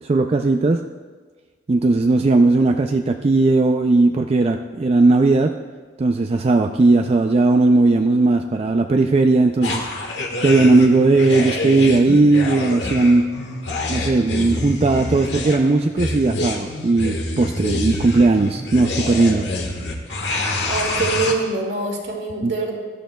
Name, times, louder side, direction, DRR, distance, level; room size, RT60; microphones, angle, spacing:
voice 1, 0.0-0.8 1.7-5.5 6.0-9.9 10.4-13.3 13.9-19.5 22.4-22.5, right 3 dB, 35° right, 5 dB, 0.4 m, -17 dB
sound 1, 9.6-21.3, left 2 dB, 75° left, 1.4 m, -26 dB
voice 2, 20.6-22.7, right 3 dB, 70° right, 0 dB, 2.2 m, -24 dB
16.5 x 11.5 x 2.3 m, 1.5 s
head